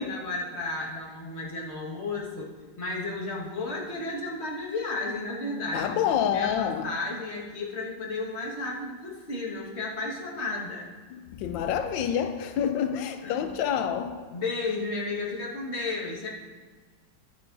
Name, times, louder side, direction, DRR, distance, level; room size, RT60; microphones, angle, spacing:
voice 1, 0.0-2.5 2.8-10.9 13.2-13.4 14.3-16.3, left 3 dB, 35° left, 1.8 m, -33 dB
voice 2, 5.7-6.9 11.1-14.2, left 8 dB, 85° left, 1.3 m, -28 dB
13.5 x 11.0 x 2.6 m
omnidirectional pair, 2.0 m